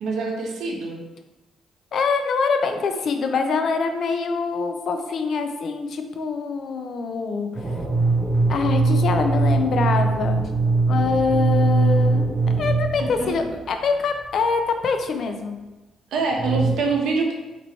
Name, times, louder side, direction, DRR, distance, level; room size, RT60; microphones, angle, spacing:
voice 1, 0.0-1.0 13.0-13.4 16.1-17.3, right 4 dB, 80° right, 0 dB, 0.7 m, -25 dB
voice 2, 1.9-7.5 8.5-10.4 10.9-12.2 12.6-15.6, left 4 dB, 60° left, 6 dB, 0.4 m, -24 dB
sound 1, 7.6-14.1 16.3-16.7, right 3 dB, 20° right, 0.6 m, -21 dB
3.0 x 2.7 x 4.2 m, 1.1 s
cardioid pair, 90°, 0 cm